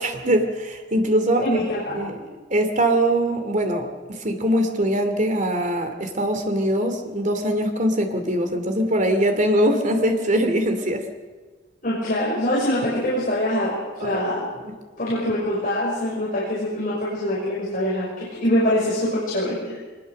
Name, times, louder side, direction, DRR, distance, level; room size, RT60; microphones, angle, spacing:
voice 1, 0.0-1.6 2.0-2.2 2.5-11.0 14.0-14.2, right 1 dB, 45° right, 6 dB, 2.6 m, -22 dB
voice 2, 1.4-2.0 11.8-14.4 15.0-19.8, left 1 dB, 45° left, -6 dB, 6.0 m, -24 dB
23.0 x 21.0 x 6.6 m, 1.4 s
head